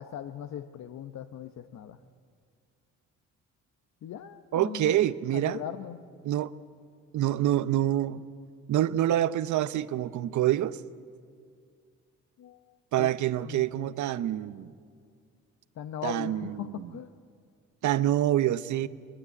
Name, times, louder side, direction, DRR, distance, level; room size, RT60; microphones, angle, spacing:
voice 1, 0.0-2.0 4.0-4.9 5.3-6.0 12.4-13.1 13.4-13.9 15.8-17.1, left 9 dB, 65° left, 0.9 m, -39 dB
voice 2, 4.5-5.6 6.2-6.5 7.1-8.2 8.7-10.8 12.9-14.7 16.0-16.9 17.8-18.9, right 12 dB, 75° right, 0.8 m, -26 dB
21.5 x 20.0 x 8.3 m
cardioid pair, 90°, 30 cm